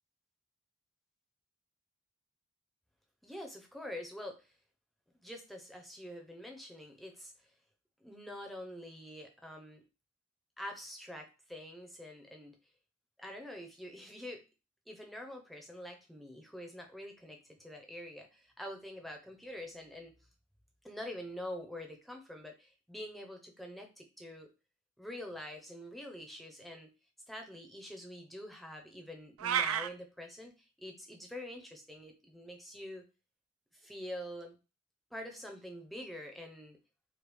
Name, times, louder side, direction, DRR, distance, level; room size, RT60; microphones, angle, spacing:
voice 1, 3.2-4.4 5.2-7.3 8.0-9.8 10.6-12.5 13.2-14.4 14.9-20.1 20.8-24.5 25.0-26.9 27.3-33.0 33.7-34.6 35.1-36.8, left 1 dB, ahead, 3 dB, 0.6 m, -46 dB
sound 1, 29.4-29.9, right 9 dB, 75° right, 0.3 m, -30 dB
3.2 x 2.8 x 3.3 m, 0.30 s
head